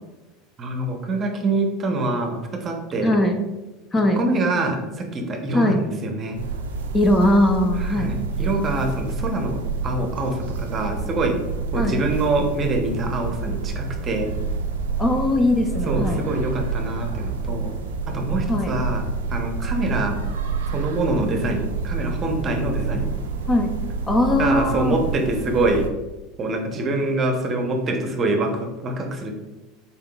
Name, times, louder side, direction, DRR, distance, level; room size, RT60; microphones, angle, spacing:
voice 1, 0.6-3.2 4.1-6.4 7.8-11.4 11.7-14.3 15.9-17.7 18.1-19.0 19.3-20.2 20.7-23.1 24.4-25.9 26.4-29.3, right 2 dB, 35° right, 3 dB, 0.7 m, -25 dB
voice 2, 3.0-3.3 3.9-4.2 5.5-5.8 6.9-8.1 11.7-12.0 15.0-16.2 18.5-18.7 23.5-23.7 24.1-25.0, left 1 dB, 20° left, 4 dB, 0.5 m, -20 dB
sound 1, 6.3-25.9, right 4 dB, 85° right, 0.4 m, -28 dB
4.1 x 3.6 x 2.3 m, 1.1 s
hypercardioid pair, 85°, 0 cm